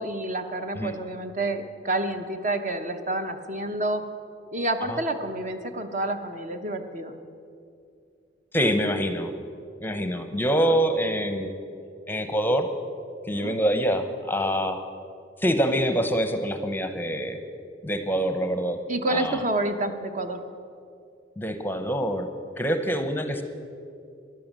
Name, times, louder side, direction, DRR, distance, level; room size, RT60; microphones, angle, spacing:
voice 1, 0.0-4.0 4.5-7.2 13.3-13.6 18.9-20.4, right 2 dB, 40° right, 7 dB, 0.9 m, -29 dB
voice 2, 8.5-9.3 9.8-11.6 12.1-12.7 13.3-14.8 15.4-17.4 17.8-18.8 19.1-19.4 21.4-22.3 22.6-23.4, equal, 10° left, 8 dB, 0.7 m, -25 dB
14.5 x 11.0 x 7.4 m, 2.4 s
head